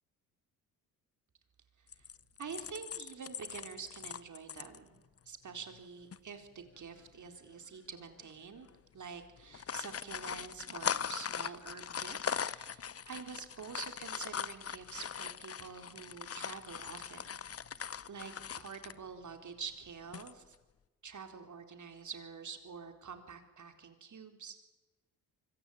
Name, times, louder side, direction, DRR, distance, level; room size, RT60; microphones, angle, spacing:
sound 1, 1.9-4.8 5.2-5.3 5.6-5.8 6.1-6.2 7.2-7.5 8.1-8.3 8.5-8.7 9.4-19.0 20.0-20.5, left 7 dB, 35° left, 1.0 m, -40 dB
voice 1, 2.4-8.7 8.9-17.4 18.1-20.6 21.0-24.6, right 6 dB, 45° right, 6 dB, 4.2 m, -47 dB
24.5 x 24.0 x 8.8 m, 1.2 s
hypercardioid pair, 55°, 42 cm